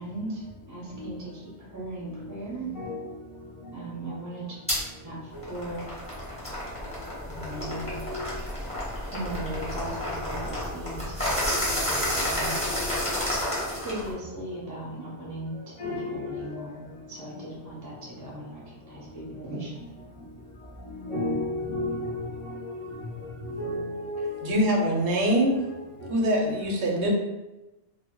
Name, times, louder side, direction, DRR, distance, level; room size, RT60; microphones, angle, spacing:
voice 1, 0.0-2.9 3.7-4.6 5.0-5.9 7.3-8.0 9.1-11.2 12.2-12.7 13.8-19.8, right 1 dB, 20° right, 0.6 m, -38 dB
sound 1, 4.7-4.8 5.3-14.1, left 1 dB, 5° left, 0.9 m, -30 dB
voice 2, 21.1-22.2 22.5-22.7 23.4-24.5, left 1 dB, 35° left, 0.6 m, -31 dB
voice 3, 24.4-25.6 26.1-27.1, right 1 dB, 80° right, 0.9 m, -24 dB
2.1 x 2.0 x 3.6 m
omnidirectional pair, 1.1 m